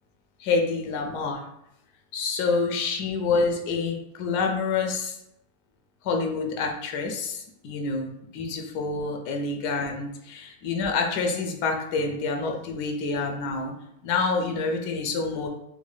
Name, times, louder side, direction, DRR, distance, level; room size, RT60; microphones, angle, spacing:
voice 1, 0.4-1.4 2.1-5.1 6.0-13.7 14.0-15.5, left 4 dB, 90° left, 3 dB, 1.2 m, -27 dB
3.6 x 2.2 x 3.2 m, 0.81 s
omnidirectional pair, 1.7 m